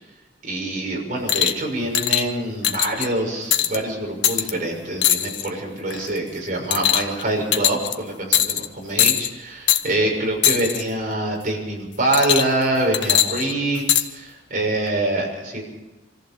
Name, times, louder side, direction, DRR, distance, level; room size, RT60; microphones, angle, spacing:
voice 1, 0.4-15.6, right 2 dB, 40° right, -1 dB, 6.7 m, -25 dB
sound 1, 1.3-1.6 1.9-2.2 2.6-3.1 3.5-3.8 4.2-4.5 5.0-5.5 5.9-6.2 6.7-7.2 7.5-7.9 8.3-8.7 9.0-9.3 9.7-9.8 10.4-10.8 12.1-12.6 12.9-14.0 14.9-15.0, left 10 dB, 60° left, 1.1 m, -20 dB
25.5 x 14.5 x 7.1 m, 1.1 s
head